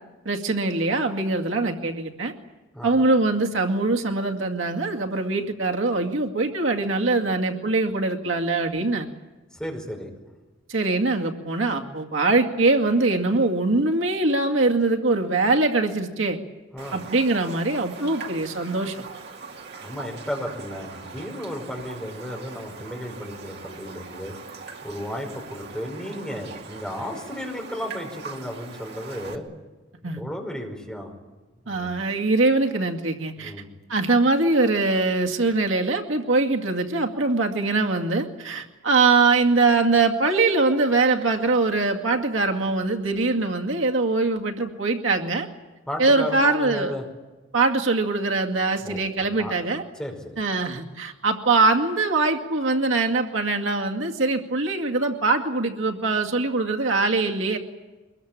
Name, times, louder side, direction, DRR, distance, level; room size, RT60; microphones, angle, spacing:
voice 1, 0.3-2.3 2.8-9.1 10.7-16.4 16.9-19.0 30.0-30.2 31.7-33.5 33.9-45.5 46.0-46.9 47.5-49.8 50.4-57.6, right 3 dB, 85° right, 3 dB, 2.2 m, -22 dB
voice 2, 9.5-10.1 16.7-17.1 19.8-24.3 24.8-29.5 30.0-31.1 31.6-31.9 33.4-33.7 45.9-47.0 48.8-49.5 50.0-50.4, equal, 5° left, 1 dB, 5.3 m, -34 dB
Raindrop, 16.8-29.4, right 4 dB, 60° right, 2.5 m, -41 dB
23.5 x 21.5 x 8.8 m, 1.2 s
head